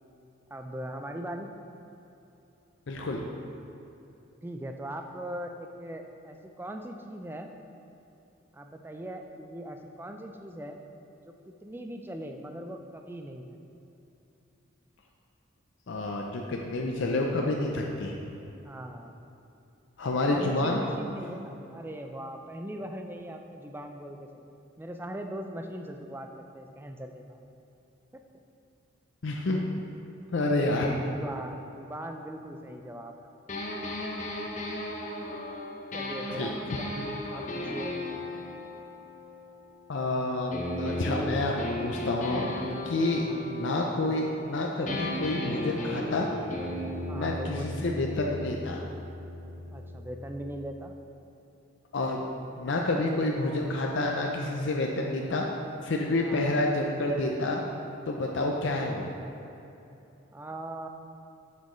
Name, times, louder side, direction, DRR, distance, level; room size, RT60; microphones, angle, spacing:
voice 1, 0.5-1.5 4.4-7.5 8.5-10.8 11.2-13.5 18.6-19.2 20.3-24.5 24.8-27.4 30.4-33.3 35.9-38.0 43.1-43.5 47.1-47.9 49.7-50.9 56.2-56.6 60.3-60.9, right 1 dB, 10° right, 4 dB, 0.3 m, -40 dB
voice 2, 2.9-3.3 15.9-18.2 20.0-20.8 29.2-29.6 30.3-31.0 36.4-36.5 39.9-42.5 42.8-46.3 47.1-48.8 51.9-52.3 52.6-55.4 55.8-57.6 58.1-59.1, left 2 dB, 60° left, 0 dB, 0.5 m, -29 dB
sound 1, 33.5-40.0 40.5-44.5 44.9-50.6, left 1 dB, 35° left, 0.8 m, -36 dB
7.6 x 7.4 x 3.1 m, 2.8 s
head